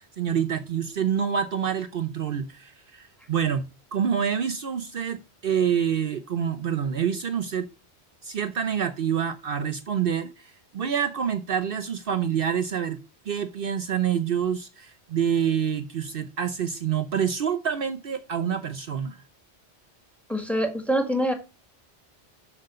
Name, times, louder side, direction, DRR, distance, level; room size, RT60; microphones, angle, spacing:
voice 1, 0.2-3.6 3.9-7.7 8.2-13.0 13.3-19.2, right 8 dB, 60° right, 0.9 m, -27 dB
voice 2, 20.3-21.3, right 1 dB, ahead, 1.7 m, -25 dB
7.8 x 6.0 x 5.5 m
omnidirectional pair, 1.1 m